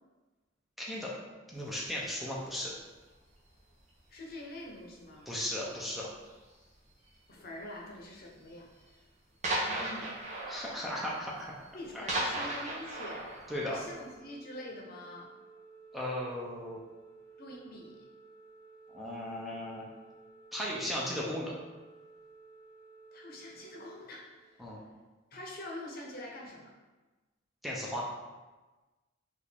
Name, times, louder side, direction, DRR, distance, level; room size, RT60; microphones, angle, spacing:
voice 1, 1.5-2.7 5.3-6.1 10.5-11.5 11.9-12.7 13.5-13.8 15.9-16.8 18.9-19.8 20.5-21.5 24.6-24.8 27.6-28.1, left 1 dB, ahead, -5 dB, 0.5 m, -36 dB
sound 1, 1.8-2.0 2.8-3.2 3.4-3.9 4.3-4.5 5.0-5.1 5.3-5.4 6.2-6.7 7.5-7.6 8.0-8.1 8.4-8.5 8.8-8.9 9.4-14.1, right 1 dB, 35° right, 0.8 m, -37 dB
voice 2, 4.1-5.3 7.3-9.0 9.5-10.2 11.7-13.2 13.6-15.3 17.4-18.1 23.1-24.7 25.3-26.7, left 1 dB, 50° left, -1 dB, 0.8 m, -45 dB
Organ, 13.7-24.7, right 4 dB, 70° right, 0.9 m, -55 dB
5.1 x 2.5 x 3.3 m, 1.2 s
head